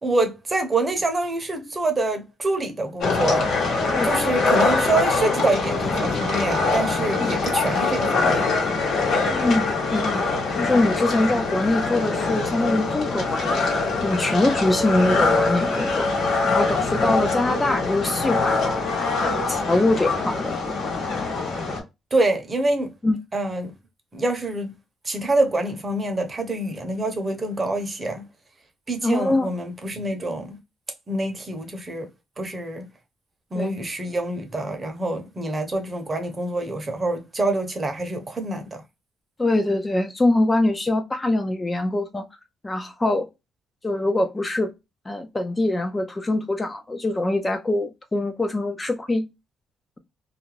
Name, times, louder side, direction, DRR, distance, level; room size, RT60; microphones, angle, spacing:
voice 1, 0.0-3.5 4.0-8.6 22.1-22.9 23.3-23.7 24.1-24.7 25.0-28.3 28.9-30.6 31.1-32.1 32.4-32.9 33.5-38.8, right 2 dB, 30° right, 0.7 m, -26 dB
sound 1, 3.0-21.8, left 3 dB, 75° left, 1.0 m, -23 dB
voice 2, 9.3-10.2 10.6-13.7 14.0-16.1 16.4-18.8 19.2-20.9 23.0-23.2 29.0-29.5 33.5-33.7 39.4-42.3 42.6-43.3 43.8-44.7 45.1-49.3, left 2 dB, 20° left, 0.4 m, -23 dB
2.4 x 2.1 x 3.0 m
cardioid pair, 90°, 0 cm